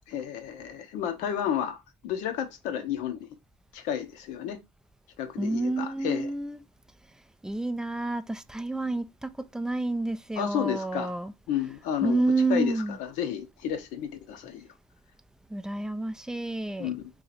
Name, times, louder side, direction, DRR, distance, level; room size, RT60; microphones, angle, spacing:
voice 1, 0.1-3.3 3.7-4.6 5.2-6.3 10.4-11.1 11.5-12.2 12.5-12.7 13.0-14.7 16.8-17.1, left 9 dB, 70° left, 0.7 m, -31 dB
voice 2, 5.4-6.6 7.4-11.3 12.0-13.0 15.5-16.9, right 2 dB, 5° right, 0.3 m, -29 dB
2.8 x 2.4 x 4.0 m
supercardioid pair, 110°, 13 cm